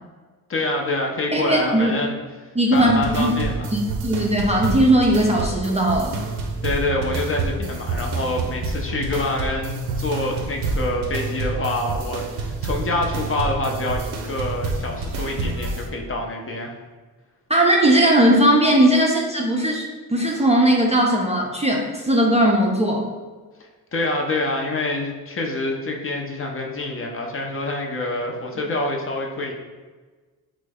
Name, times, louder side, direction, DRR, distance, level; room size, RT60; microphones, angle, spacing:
voice 1, 0.5-2.2 2.7-3.7 6.6-16.7 23.9-29.5, left 2 dB, 35° left, 1 dB, 0.6 m, -26 dB
voice 2, 1.3-2.0 2.6-3.3 3.7-6.2 17.5-19.8 20.1-23.1, right 1 dB, 15° right, -2 dB, 0.4 m, -18 dB
sound 1, 2.7-15.9, right 3 dB, 90° right, 0.5 m, -28 dB
3.2 x 2.1 x 3.4 m, 1.3 s
cardioid pair, 65°, 39 cm